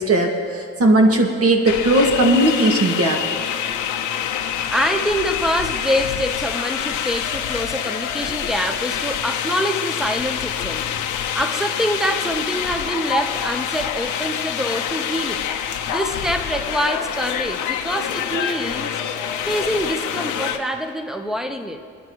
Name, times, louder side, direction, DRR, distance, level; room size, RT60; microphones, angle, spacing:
voice 1, 0.1-3.2, right 1 dB, 50° right, 1 dB, 2.2 m, -17 dB
sound 1, 1.7-20.6, left 9 dB, 90° left, 1.1 m, -26 dB
voice 2, 4.7-10.9 11.3-15.4 15.9-19.0 19.5-21.8, equal, ahead, 5 dB, 1.1 m, -25 dB
30.0 x 10.0 x 3.2 m, 2.3 s
cardioid pair, 90°, 30 cm